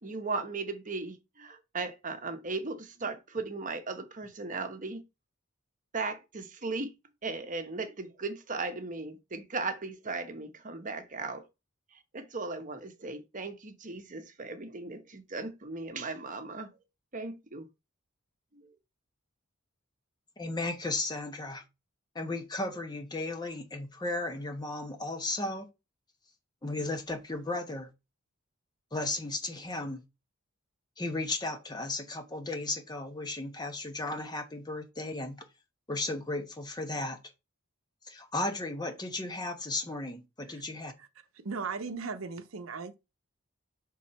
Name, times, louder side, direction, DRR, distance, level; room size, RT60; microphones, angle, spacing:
voice 1, 0.0-5.0 5.9-6.9 7.2-11.4 11.9-16.8 17.1-17.7 18.5-18.7, right 3 dB, 40° right, 1.0 m, -37 dB
voice 2, 20.4-21.6 22.1-25.7 26.6-27.9 28.9-30.0 31.0-35.4 35.9-37.2 38.1-40.9, left 2 dB, 20° left, 1.0 m, -35 dB
voice 3, 41.3-42.9, right 4 dB, 75° right, 0.7 m, -37 dB
6.3 x 3.8 x 4.2 m
head